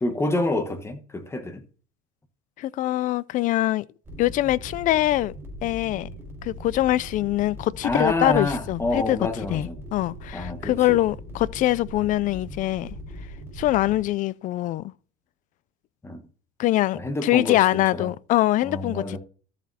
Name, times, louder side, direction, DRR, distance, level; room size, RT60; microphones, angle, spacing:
voice 1, 0.0-1.6 7.8-9.8 10.3-11.0 16.0-16.2 16.9-18.1 18.6-19.2, left 2 dB, 15° left, 1.2 m, -27 dB
voice 2, 2.6-3.9 4.2-5.3 5.6-6.1 6.4-9.2 9.5-12.9 13.6-14.9 16.6-19.2, left 15 dB, 45° left, 0.4 m, -23 dB
sound 1, 4.0-14.0, equal, 10° right, 5.1 m, -40 dB
13.5 x 7.4 x 2.8 m
cardioid pair, 125°, 19 cm